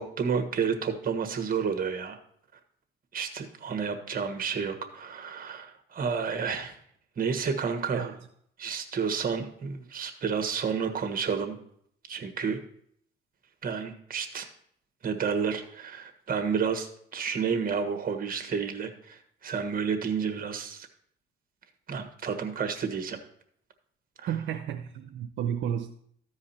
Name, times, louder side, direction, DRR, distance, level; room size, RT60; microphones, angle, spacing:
voice 1, 0.0-2.2 3.1-6.7 7.2-8.1 8.6-11.6 12.1-12.6 13.6-14.5 15.0-20.9 21.9-23.2 24.2-24.3, right 6 dB, 45° right, 6 dB, 1.5 m, -30 dB
voice 2, 24.3-25.9, right 9 dB, 75° right, 4 dB, 0.7 m, -32 dB
14.0 x 4.9 x 4.3 m, 0.66 s
cardioid pair, 90°, 20 cm